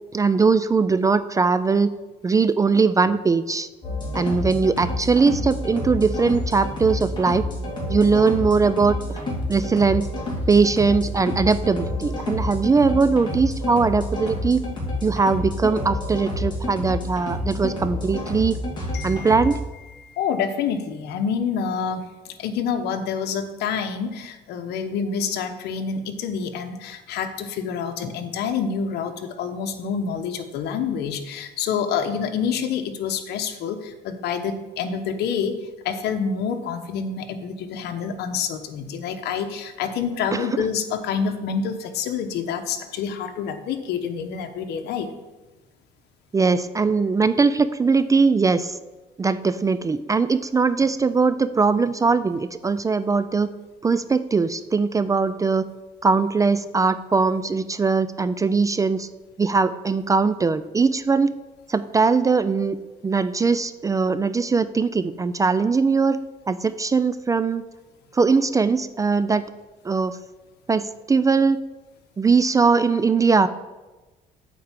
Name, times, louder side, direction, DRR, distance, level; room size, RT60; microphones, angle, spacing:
voice 1, 0.1-1.9 2.2-3.7 4.1-7.5 7.9-9.0 9.5-10.1 10.5-14.6 15.0-18.6 19.0-19.6 40.3-40.5 46.3-48.8 49.2-53.5 53.8-55.7 56.0-59.1 59.4-61.3 61.7-62.8 63.0-66.2 66.5-67.6 68.1-69.4 69.8-70.2 70.7-71.6 72.2-73.5, right 4 dB, 20° right, 14 dB, 0.3 m, -20 dB
sound 1, 3.8-19.6, left 1 dB, 25° left, 3.2 m, -29 dB
voice 2, 18.9-19.6 19.9-35.6 35.8-45.1, left 6 dB, 75° left, 7 dB, 1.0 m, -27 dB
8.5 x 4.7 x 7.4 m, 1.2 s
cardioid pair, 110°, 17 cm